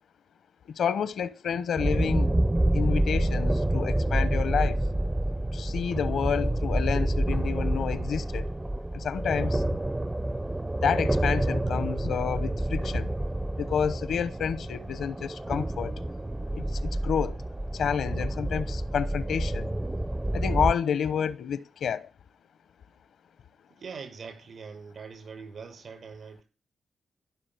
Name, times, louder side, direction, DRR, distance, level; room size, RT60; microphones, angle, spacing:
voice 1, 0.7-2.3 2.7-4.8 5.5-8.5 8.9-9.6 10.8-13.1 13.6-16.0 16.5-17.4 17.7-19.7 20.3-22.1, left 7 dB, 80° left, 0.9 m, -29 dB
sound 1, 1.8-20.7, right 1 dB, 15° right, 0.6 m, -28 dB
voice 2, 23.8-26.4, right 5 dB, 65° right, 6.3 m, -42 dB
15.0 x 6.3 x 9.5 m
cardioid pair, 75°, 0 cm